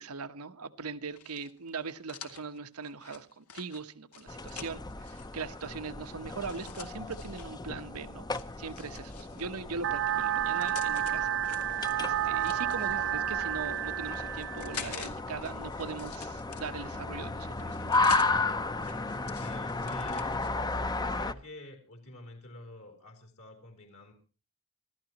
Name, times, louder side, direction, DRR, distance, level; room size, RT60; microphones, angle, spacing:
voice 1, 0.0-8.3 8.6-11.4 11.7-17.9, right 4 dB, 85° right, 10 dB, 1.1 m, -40 dB
sound 1, 1.1-5.3 6.4-7.5 8.3-9.6 10.3-11.1 11.4-13.0 13.6-15.1 15.4-17.0 17.5-18.3 18.8-20.5, left 7 dB, 90° left, 2.3 m, -46 dB
sound 2, 4.3-21.3, left 3 dB, 20° left, 0.6 m, -34 dB
sound 3, 9.8-14.8, right 11 dB, 55° right, 0.8 m, -30 dB
voice 2, 19.3-20.4 20.6-24.1, left 2 dB, 65° left, 4 dB, 3.6 m, -49 dB
26.0 x 13.5 x 3.0 m, 0.36 s
head